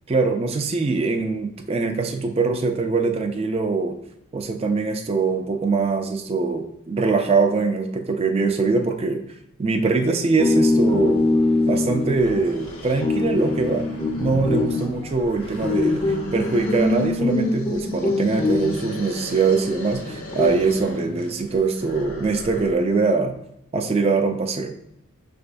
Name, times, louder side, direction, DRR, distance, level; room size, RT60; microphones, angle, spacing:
voice 1, 0.1-3.9 4.3-9.2 9.6-11.2 11.7-13.9 14.2-23.4 23.7-24.7, right 4 dB, 25° right, 5 dB, 0.3 m, -22 dB
sound 1, 10.4-19.3 20.0-21.4, left 2 dB, 25° left, 0.5 m, -23 dB
sound 2, 12.1-22.9, left 1 dB, 85° left, 1.5 m, -39 dB
6.2 x 3.3 x 2.5 m, 0.77 s
head